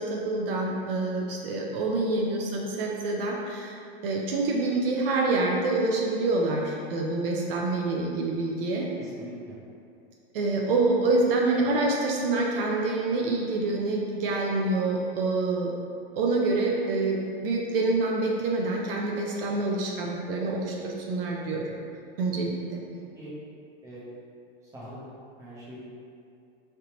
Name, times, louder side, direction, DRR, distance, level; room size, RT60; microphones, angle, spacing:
voice 1, 0.0-3.8 4.0-8.9 10.3-15.7 16.1-21.7 22.2-22.8, right 2 dB, 65° right, -1 dB, 0.6 m, -26 dB
voice 2, 9.0-9.5 23.2-23.3 23.8-24.0 24.7-25.0 25.4-25.8, equal, 10° right, -7 dB, 0.5 m, -43 dB
3.8 x 3.3 x 2.9 m, 2.4 s
supercardioid pair, 165°, 31 cm